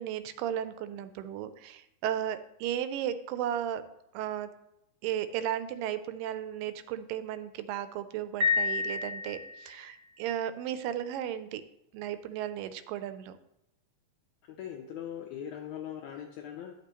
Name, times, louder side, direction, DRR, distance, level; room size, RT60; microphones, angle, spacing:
voice 1, 0.0-3.8 4.1-4.5 5.0-11.6 11.9-13.3, right 10 dB, 90° right, 12 dB, 2.2 m, -35 dB
Piano, 8.4-9.9, left 5 dB, 60° right, 1.5 m, -29 dB
voice 2, 14.6-16.7, left 9 dB, 80° left, 4 dB, 1.7 m, -40 dB
10.0 x 6.7 x 2.9 m, 0.84 s
omnidirectional pair, 3.8 m